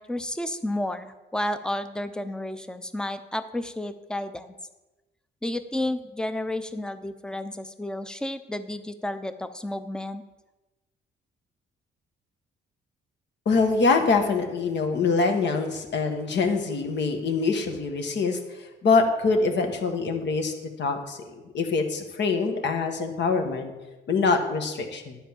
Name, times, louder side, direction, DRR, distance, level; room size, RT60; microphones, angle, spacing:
voice 1, 0.0-4.6 5.4-10.2, left 1 dB, 5° left, 10 dB, 0.6 m, -31 dB
voice 2, 13.4-21.2 21.5-23.7 24.1-25.1, left 4 dB, 65° left, 4 dB, 1.4 m, -24 dB
10.0 x 4.5 x 7.3 m, 1.1 s
cardioid pair, 90°, 20 cm